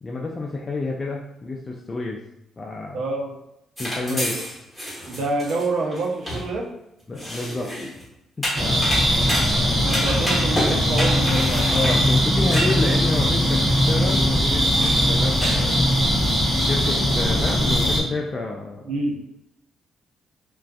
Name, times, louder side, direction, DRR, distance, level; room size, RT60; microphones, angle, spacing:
voice 1, 0.0-2.2 2.6-3.0 3.8-4.3 7.1-7.7 8.4-9.1 9.7-9.8 11.7-14.6 15.0-16.0 16.6-18.9, left 3 dB, 30° left, -1 dB, 0.3 m, -29 dB
voice 2, 2.9-3.4 4.1-4.2 5.1-6.7 9.8-11.7 18.8-19.2, right 2 dB, 75° right, -1 dB, 0.6 m, -27 dB
sound 1, 3.8-6.5 7.1-8.0 8.4-13.1 13.6-13.7 14.3-14.4 14.8-15.1 15.4-15.7, equal, ahead, 1.1 m, -29 dB
sound 2, 8.5-18.0, equal, 15° right, 0.7 m, -20 dB
2.4 x 2.3 x 2.3 m, 0.83 s
cardioid pair, 90°, 0 cm